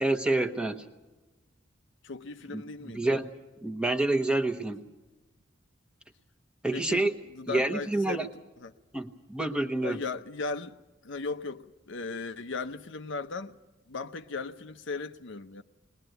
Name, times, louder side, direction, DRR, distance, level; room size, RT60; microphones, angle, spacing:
voice 1, 0.0-0.8 2.5-3.3 3.6-4.8 6.6-7.1 7.5-8.3 8.9-10.0, right 2 dB, 5° right, 1.0 m, -28 dB
voice 2, 2.0-3.2 6.7-7.1 7.3-8.8 9.8-10.8 11.0-13.6 13.9-15.6, left 4 dB, 70° left, 0.7 m, -37 dB
21.5 x 20.5 x 7.9 m
head